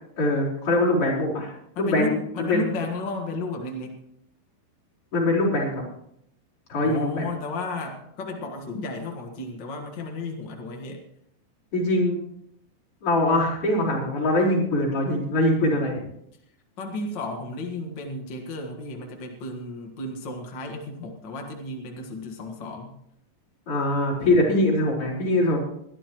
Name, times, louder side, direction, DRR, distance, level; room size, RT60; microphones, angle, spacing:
voice 1, 0.2-2.7 5.1-5.8 6.7-7.2 11.7-12.2 13.0-16.0 23.7-25.6, left 1 dB, 30° left, -5 dB, 5.1 m, -23 dB
voice 2, 1.7-3.9 6.8-11.0 16.8-22.9, left 2 dB, 80° left, 2 dB, 1.0 m, -33 dB
21.5 x 13.0 x 3.1 m, 0.73 s
omnidirectional pair, 5.0 m